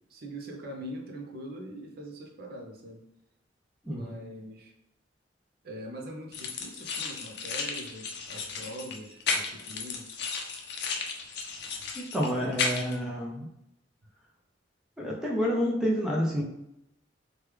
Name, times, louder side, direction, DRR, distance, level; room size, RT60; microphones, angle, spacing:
voice 1, 0.1-3.0 3.9-4.7 5.6-10.1, equal, 55° right, 1 dB, 0.5 m, -42 dB
sound 1, 6.3-13.0, left 4 dB, 60° left, 0.5 m, -34 dB
voice 2, 11.9-13.5 15.0-16.4, equal, 5° right, -3 dB, 0.5 m, -29 dB
3.1 x 2.2 x 3.3 m, 0.83 s
head